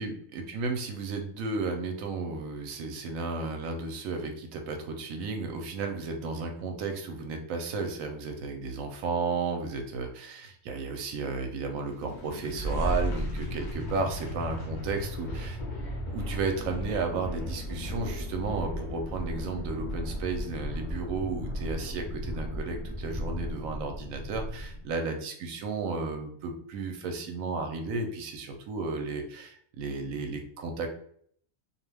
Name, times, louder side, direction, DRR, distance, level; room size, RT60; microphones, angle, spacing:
voice 1, 0.0-15.6 16.1-30.9, right 4 dB, 80° right, 5 dB, 1.0 m, -33 dB
sound 1, 11.8-24.9, equal, 50° left, 0.6 m, -35 dB
2.5 x 2.2 x 3.2 m, 0.63 s
omnidirectional pair, 1.4 m